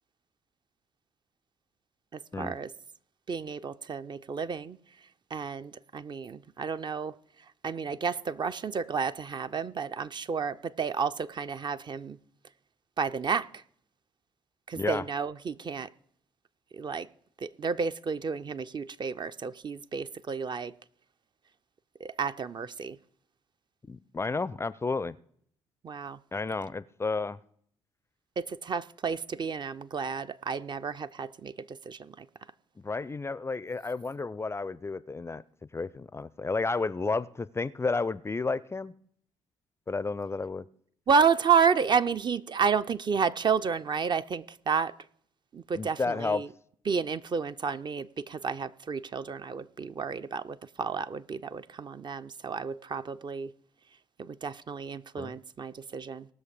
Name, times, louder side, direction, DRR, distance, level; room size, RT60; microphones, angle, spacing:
voice 1, 2.4-2.7 3.3-4.8 5.3-7.1 7.6-12.2 13.0-13.5 14.7-15.9 16.8-17.1 17.4-20.7 22.0-23.0 25.8-26.2 28.4-31.5 31.9-32.1 41.1-44.9 45.5-46.5 46.9-53.5 54.2-56.3, right 6 dB, 35° right, 0.5 m, -31 dB
voice 2, 14.7-15.0 23.9-25.2 26.3-27.4 32.8-35.4 35.7-38.9 39.9-40.7 45.8-46.4 55.2-55.3, left 3 dB, 20° left, 0.4 m, -31 dB
18.5 x 6.4 x 5.1 m
figure-of-eight pair, 45°, 14 cm